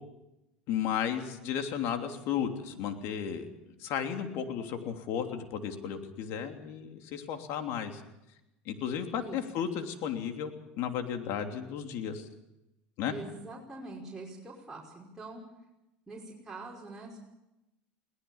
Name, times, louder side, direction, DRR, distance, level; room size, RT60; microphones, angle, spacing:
voice 1, 0.7-3.5 3.8-8.0 8.6-12.2 13.0-13.1, left 8 dB, 65° left, 5 dB, 3.1 m, -34 dB
voice 2, 13.1-15.4 16.1-17.2, right 2 dB, 10° right, -4 dB, 5.5 m, -44 dB
22.0 x 18.0 x 7.2 m, 0.92 s
hypercardioid pair, 90°, 5 cm